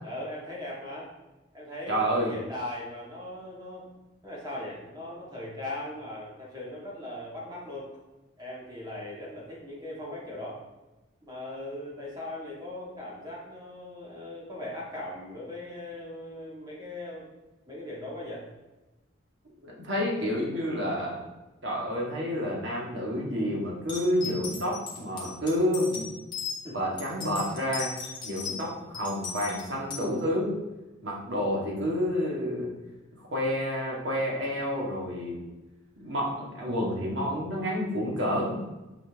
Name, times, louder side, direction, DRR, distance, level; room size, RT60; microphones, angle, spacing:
voice 1, 0.0-1.1 1.5-3.9 4.2-7.9 8.4-10.6 11.2-17.3 17.7-18.5 26.6-26.8, left 1 dB, 20° right, -5 dB, 2.3 m, -39 dB
voice 2, 1.9-2.3 19.6-21.2 21.6-26.1 26.7-27.9 28.2-30.6 31.0-32.7 33.3-35.4 36.0-38.6, equal, 65° right, -3 dB, 2.2 m, -29 dB
sound 1, 23.9-26.6 27.0-28.6 28.9-30.0, left 5 dB, 25° left, 2.0 m, -37 dB
9.5 x 5.0 x 3.7 m, 1.1 s
head